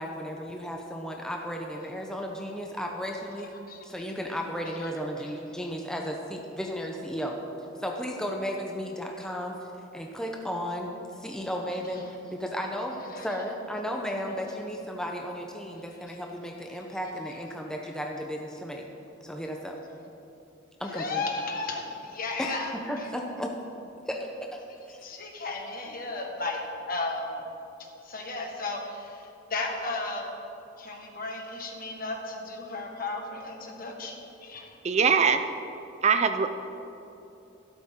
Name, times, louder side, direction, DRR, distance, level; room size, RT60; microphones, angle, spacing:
voice 1, 0.0-3.6 3.8-7.4 7.8-9.6 9.9-18.8 19.2-19.8 20.8-21.2 22.4-23.5 24.1-25.0, equal, 5° left, 1 dB, 0.7 m, -34 dB
voice 2, 20.9-23.1 25.0-27.4 28.0-30.3 30.8-34.7, left 3 dB, 45° left, 1 dB, 1.5 m, -34 dB
voice 3, 34.8-35.4 36.0-36.5, right 6 dB, 35° right, 9 dB, 0.4 m, -22 dB
12.0 x 12.0 x 3.7 m, 2.9 s
head